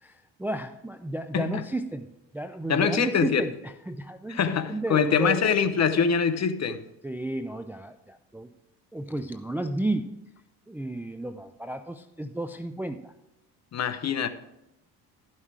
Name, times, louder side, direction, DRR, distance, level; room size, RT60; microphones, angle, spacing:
voice 1, 0.0-2.1 2.3-5.4 7.0-8.5 8.9-10.1 10.7-13.1, right 1 dB, 5° right, 0.4 m, -33 dB
voice 2, 2.7-3.4 4.3-6.8 13.7-14.3, left 6 dB, 40° left, 1.0 m, -24 dB
13.0 x 5.7 x 4.8 m
supercardioid pair, 75°, 42 cm